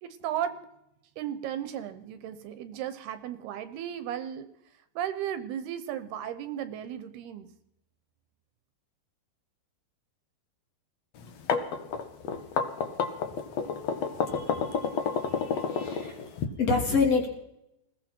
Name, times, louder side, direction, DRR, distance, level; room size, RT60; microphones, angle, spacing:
voice 1, 0.0-0.6 1.2-4.5 5.0-7.5, right 10 dB, 75° right, 11 dB, 2.7 m, -35 dB
sound 1, 11.2-16.5, left 6 dB, 60° left, 1.9 m, -29 dB
voice 2, 14.3-14.6 15.3-16.2 16.6-17.3, left 4 dB, 40° left, 2 dB, 3.1 m, -27 dB
20.5 x 15.5 x 4.5 m, 0.80 s
omnidirectional pair, 4.9 m